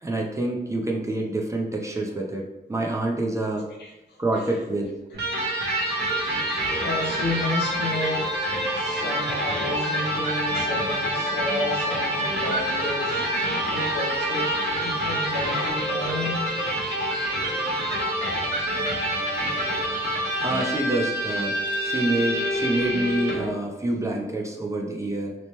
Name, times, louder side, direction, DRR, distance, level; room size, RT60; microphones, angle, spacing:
voice 1, 0.0-3.6 4.2-4.9 20.4-25.4, right 2 dB, 15° right, 0 dB, 0.4 m, -27 dB
voice 2, 3.8-4.5 6.8-13.2 13.7-14.5 14.8-16.4, left 1 dB, 75° left, -2 dB, 0.8 m, -31 dB
Electric guitar, 5.1-23.5, right 1 dB, 80° right, 0.8 m, -27 dB
sound 1, 5.5-15.7, left 3 dB, 10° left, 0.7 m, -36 dB
2.8 x 2.1 x 3.0 m, 0.97 s
wide cardioid pair, 135°, 17 cm